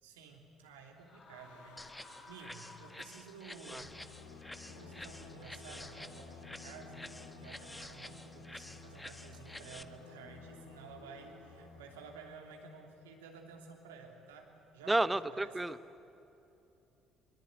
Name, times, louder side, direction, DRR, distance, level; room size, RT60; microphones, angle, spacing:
voice 1, 0.0-4.0 4.7-15.6, right 5 dB, 80° right, 2 dB, 3.0 m, -53 dB
sound 1, 1.0-3.6, left 2 dB, 45° left, 3.9 m, -56 dB
Singing, 1.3-12.7, left 4 dB, 80° left, 2.7 m, -54 dB
sound 2, 1.8-9.8, left 1 dB, 10° left, 1.5 m, -50 dB
voice 2, 14.9-15.8, right 2 dB, 15° right, 15 dB, 0.9 m, -31 dB
22.0 x 22.0 x 9.7 m, 2.9 s
hypercardioid pair, 55°, 0 cm